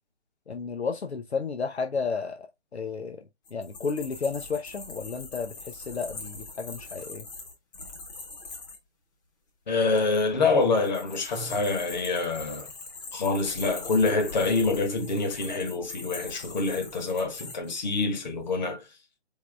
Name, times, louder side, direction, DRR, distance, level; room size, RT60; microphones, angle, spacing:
voice 1, 0.5-2.5 2.7-3.2 3.5-7.2, left 5 dB, 70° left, 0.8 m, -32 dB
sound 1, 3.5-8.8 10.6-17.8, left 3 dB, 15° left, 0.8 m, -42 dB
voice 2, 9.7-12.7 13.1-18.8, left 3 dB, 40° left, 1.4 m, -26 dB
4.7 x 3.3 x 3.4 m
figure-of-eight pair, 145°, 34 cm